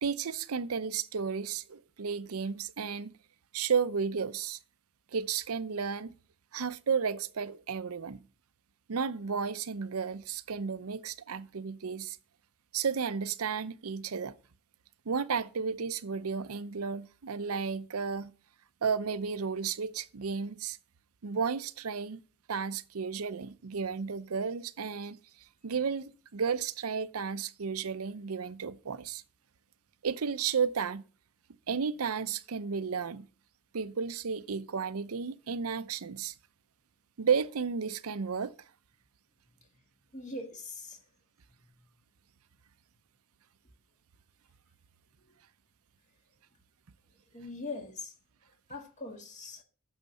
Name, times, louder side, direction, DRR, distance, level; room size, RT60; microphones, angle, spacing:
voice 1, 0.0-3.1 3.5-4.6 5.1-6.1 6.5-8.2 8.9-12.2 12.7-14.3 15.1-18.3 18.8-20.8 21.2-22.2 22.5-25.2 25.6-29.2 30.0-31.0 31.7-33.3 33.7-36.3 37.2-38.5, right 6 dB, 90° right, 0.6 m, -33 dB
voice 2, 40.1-41.0 47.3-48.1 48.7-49.6, left 2 dB, 35° left, 1.9 m, -41 dB
9.2 x 7.2 x 5.3 m
head